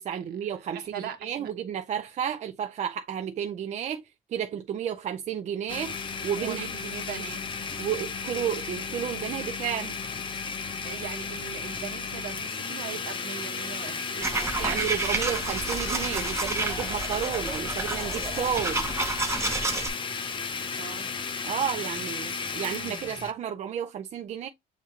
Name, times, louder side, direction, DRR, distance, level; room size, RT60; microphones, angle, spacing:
voice 1, 0.0-0.8 1.2-4.0 4.3-5.9 6.2-6.6 7.8-9.9 14.6-18.9 21.4-24.5, right 9 dB, 45° right, 0.4 m, -32 dB
voice 2, 0.5-1.5 6.4-7.5 10.8-14.9 20.8-21.1, right 8 dB, 65° right, 1.2 m, -40 dB
Domestic sounds home sounds, 5.7-23.3, left 5 dB, 30° left, 0.6 m, -34 dB
sound 1, 14.2-19.9, right 2 dB, 15° right, 0.8 m, -30 dB
7.1 x 2.4 x 2.8 m
cardioid pair, 110°, 17 cm